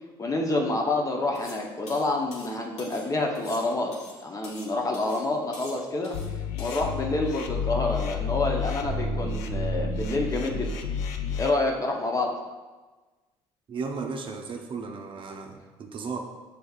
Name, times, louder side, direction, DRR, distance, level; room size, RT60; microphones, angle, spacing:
voice 1, 0.2-6.2 6.6-10.8 11.4-12.4, left 2 dB, 30° left, 1 dB, 0.7 m, -28 dB
sound 1, 1.4-1.6 1.9-3.1 3.4-4.7 4.9-5.3 5.5-6.3 6.6-6.8, left 2 dB, 65° left, 1.3 m, -45 dB
sound 2, 6.1-11.5, left 4 dB, 80° left, 0.4 m, -30 dB
voice 2, 13.7-16.2, right 4 dB, 45° right, 2 dB, 0.6 m, -35 dB
6.3 x 3.3 x 2.4 m, 1.3 s
supercardioid pair, 75°, 12 cm